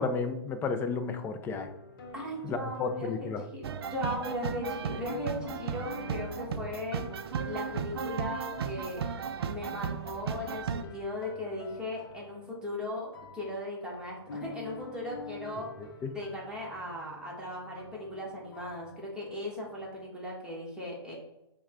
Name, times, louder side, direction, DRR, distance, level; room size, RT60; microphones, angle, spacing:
voice 1, 0.0-1.7 2.4-3.4 16.0-16.1, left 4 dB, 15° left, 9 dB, 0.4 m, -32 dB
sound 1, 1.5-20.0, left 4 dB, 55° left, 0.8 m, -49 dB
voice 2, 2.1-3.1 3.5-3.6 3.9-7.0 7.4-9.0 9.4-15.7 16.1-21.1, left 1 dB, 5° right, -4 dB, 1.3 m, -37 dB
sound 2, 3.6-10.8, right 6 dB, 65° right, 0.4 m, -35 dB
5.2 x 2.2 x 3.7 m, 0.91 s
hypercardioid pair, 125°, 14 cm